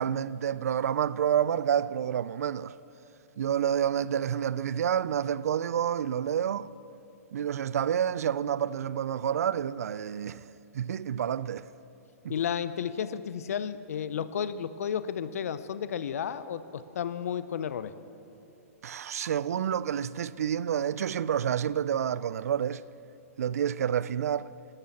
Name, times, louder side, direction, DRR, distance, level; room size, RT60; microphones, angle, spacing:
voice 1, 0.0-2.8 3.4-6.7 7.3-10.5 10.7-11.7 12.2-12.3 18.8-22.8 23.4-24.5, right 9 dB, 75° right, 0.4 m, -29 dB
voice 2, 12.3-17.9, left 8 dB, 70° left, 0.7 m, -32 dB
12.5 x 12.5 x 7.2 m
hypercardioid pair, 145°, 8 cm